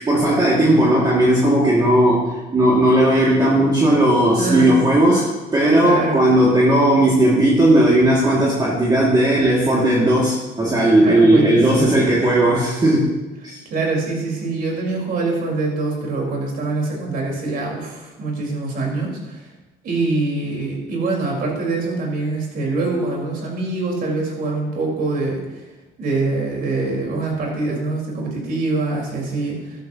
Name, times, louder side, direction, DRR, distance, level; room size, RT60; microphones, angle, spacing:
voice 1, 0.0-13.1 13.4-13.6, right 1 dB, 25° right, -5 dB, 2.2 m, -16 dB
voice 2, 4.4-4.7 5.8-6.2 11.0-12.0 13.7-19.5 19.8-25.6 26.0-29.8, right 3 dB, 60° right, -1 dB, 4.2 m, -24 dB
13.0 x 12.0 x 2.9 m, 1.1 s
cardioid pair, 110°, 17 cm